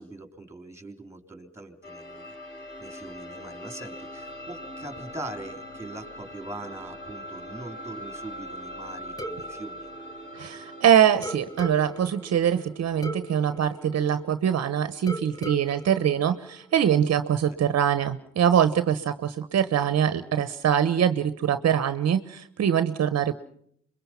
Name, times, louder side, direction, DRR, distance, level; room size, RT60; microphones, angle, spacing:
voice 1, 0.0-2.3 2.8-9.9, right 2 dB, 10° right, 7 dB, 3.3 m, -41 dB
sound 1, 1.8-17.4, equal, 40° left, 5.6 m, -43 dB
sound 2, 9.2-10.8 11.2-14.6 15.1-17.0, right 1 dB, 10° left, 1.4 m, -40 dB
voice 2, 10.3-23.3, right 9 dB, 55° right, 12 dB, 1.1 m, -23 dB
26.5 x 22.5 x 5.8 m, 0.66 s
cardioid pair, 90°, 30 cm